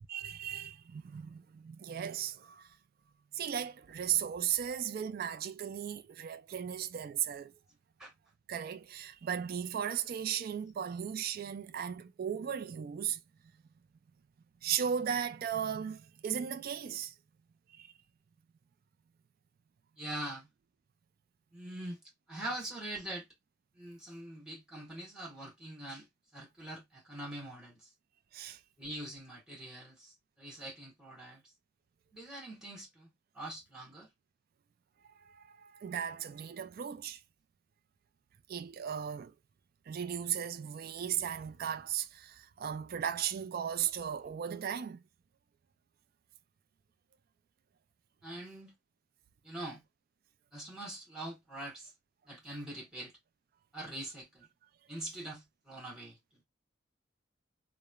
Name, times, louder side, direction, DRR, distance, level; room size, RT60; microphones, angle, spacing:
voice 1, 0.1-2.8 3.3-7.5 8.5-13.2 14.6-17.1 17.7-17.9 28.3-28.6 35.1-37.2 38.5-39.3 39.9-45.0, right 9 dB, 50° right, 0.3 m, -36 dB
voice 2, 20.0-20.5 21.5-22.0 22.3-23.3 23.8-26.1 26.3-27.9 28.8-31.4 32.1-34.1 48.2-48.7 49.4-49.8 50.5-51.9 52.3-53.1 53.7-54.5 54.9-56.2, right 1 dB, 5° right, 1.3 m, -43 dB
3.0 x 2.0 x 2.2 m
head